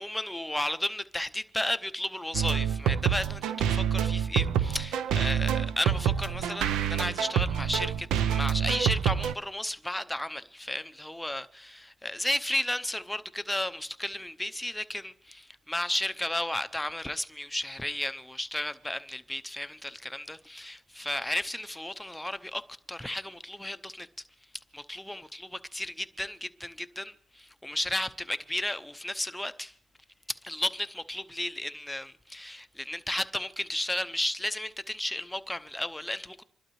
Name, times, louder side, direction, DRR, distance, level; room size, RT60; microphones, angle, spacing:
voice 1, 0.0-24.1 24.7-25.4 25.7-29.7 30.3-36.4, left 1 dB, 5° left, 0.7 m, -33 dB
sound 1, 2.3-9.3, right 9 dB, 85° right, 0.5 m, -27 dB
27.0 x 12.0 x 3.1 m
cardioid pair, 90°, 0 cm